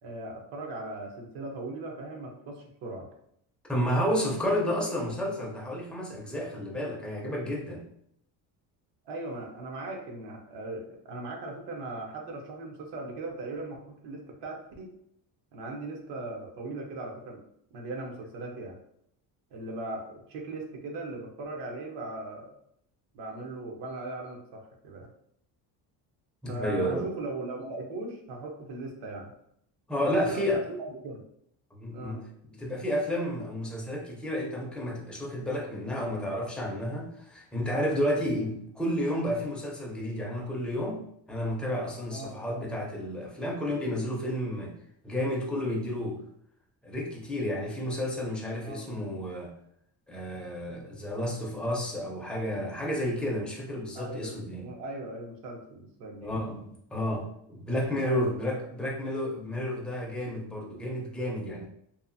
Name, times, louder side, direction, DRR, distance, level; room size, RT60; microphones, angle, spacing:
voice 1, 0.0-3.1 9.0-14.9 15.5-17.4 17.7-18.8 19.5-22.5 23.1-25.1 26.5-29.3 30.0-30.8 31.0-31.2 31.9-32.3 37.9-38.2 42.1-42.4 48.6-48.9 53.9-56.4 58.0-58.3, right 2 dB, 80° right, 1 dB, 0.8 m, -39 dB
voice 2, 3.7-7.9 26.4-27.1 29.9-30.6 31.7-41.0 41.3-44.7 45.0-46.2 46.8-49.5 50.1-54.7 56.2-61.6, equal, 5° left, -3 dB, 0.4 m, -31 dB
2.9 x 2.3 x 2.5 m, 0.71 s
cardioid pair, 160°, 41 cm